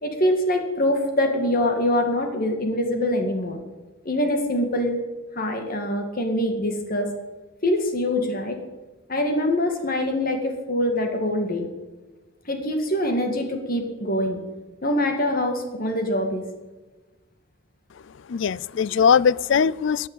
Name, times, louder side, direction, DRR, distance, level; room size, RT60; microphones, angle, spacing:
voice 1, 0.0-3.6 4.0-5.0 5.4-7.1 7.6-8.6 9.1-11.7 12.5-14.4 14.8-16.4, left 1 dB, 45° left, 5 dB, 2.1 m, -24 dB
voice 2, 17.9-20.1, left 6 dB, 60° left, 22 dB, 0.4 m, -21 dB
15.0 x 10.0 x 9.1 m, 1.2 s
head